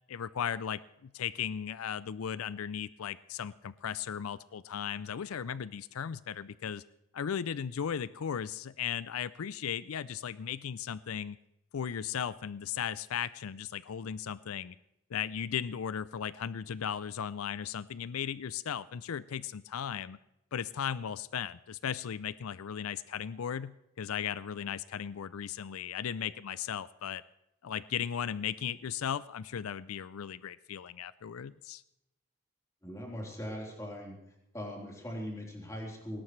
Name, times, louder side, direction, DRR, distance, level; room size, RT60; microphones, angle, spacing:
voice 1, 0.1-6.8 7.1-11.4 11.7-14.8 15.1-20.2 20.5-27.2 27.6-31.8, left 8 dB, 85° left, 17 dB, 0.4 m, -36 dB
voice 2, 32.8-34.2 34.5-36.2, equal, 15° left, -2 dB, 3.8 m, -40 dB
20.0 x 17.5 x 3.2 m, 0.86 s
head